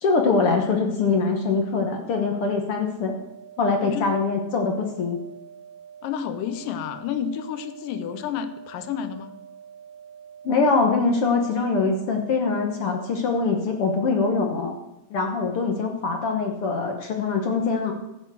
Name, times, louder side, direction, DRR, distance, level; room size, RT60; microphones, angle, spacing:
voice 1, 0.0-3.1 3.6-5.2 10.4-14.8 15.1-17.9, left 4 dB, 60° left, 3 dB, 1.7 m, -23 dB
sound 1, 3.2-13.2, right 8 dB, 30° right, 2.2 m, -46 dB
voice 2, 3.8-4.1 6.0-9.4, left 8 dB, 85° left, 11 dB, 2.6 m, -30 dB
15.5 x 6.7 x 6.3 m, 0.92 s
omnidirectional pair, 3.8 m